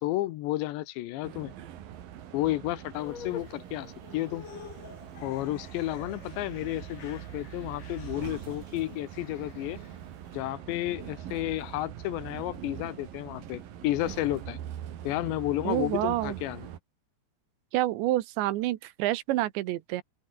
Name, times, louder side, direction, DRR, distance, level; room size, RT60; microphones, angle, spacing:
voice 1, 0.0-1.5 2.3-4.4 5.2-9.8 10.3-14.6 15.0-16.7, left 16 dB, 80° left, 3.2 m, -32 dB
sound 1, 1.2-16.8, right 10 dB, 60° right, 3.2 m, -43 dB
sound 2, 2.9-10.4, left 8 dB, 50° left, 3.9 m, -48 dB
voice 2, 15.6-16.4 17.7-20.0, right 16 dB, 85° right, 3.3 m, -28 dB
open air
omnidirectional pair, 5.2 m